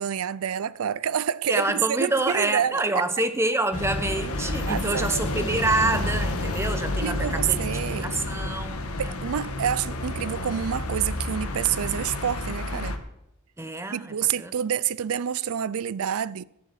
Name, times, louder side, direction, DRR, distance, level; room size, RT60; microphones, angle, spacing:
voice 1, 0.0-3.1 4.6-5.2 7.0-8.1 8.4-8.5 9.0-13.0 13.9-16.4, right 9 dB, 80° right, 0.4 m, -28 dB
voice 2, 1.5-7.7 8.0-9.1 13.6-14.5, right 2 dB, 10° right, 1.0 m, -27 dB
sound 1, 3.7-13.0, left 1 dB, 85° left, 1.5 m, -30 dB
14.0 x 7.4 x 9.0 m
head